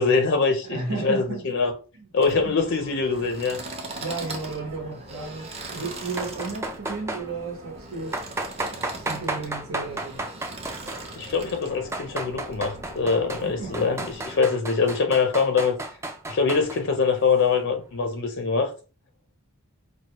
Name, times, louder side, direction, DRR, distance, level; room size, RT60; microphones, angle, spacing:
voice 1, 0.0-1.7 2.1-3.6 11.2-15.8 16.3-18.7, left 5 dB, 55° left, 0.5 m, -23 dB
voice 2, 0.6-1.4 2.0-2.5 4.0-8.2 8.6-10.2 13.4-13.9, right 3 dB, 75° right, 1.2 m, -34 dB
sound 1, 2.2-14.4, right 2 dB, 30° right, 0.8 m, -40 dB
sound 2, 6.1-7.3 8.1-11.2 11.7-13.5 13.7-16.8, right 2 dB, 10° right, 0.4 m, -33 dB
4.6 x 2.4 x 2.9 m
head